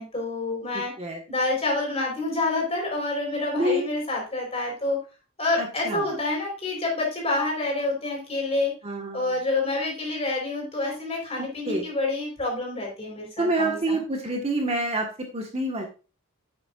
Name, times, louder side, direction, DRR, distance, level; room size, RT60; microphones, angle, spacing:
voice 1, 0.0-0.9 1.3-5.0 5.4-8.7 9.1-14.0, left 2 dB, 30° left, -1 dB, 4.4 m, -28 dB
voice 2, 0.7-1.2 3.6-3.8 5.6-6.1 8.8-9.4 11.4-11.9 13.4-15.8, right 1 dB, 30° right, 1 dB, 1.5 m, -28 dB
10.5 x 7.6 x 2.5 m, 0.32 s
head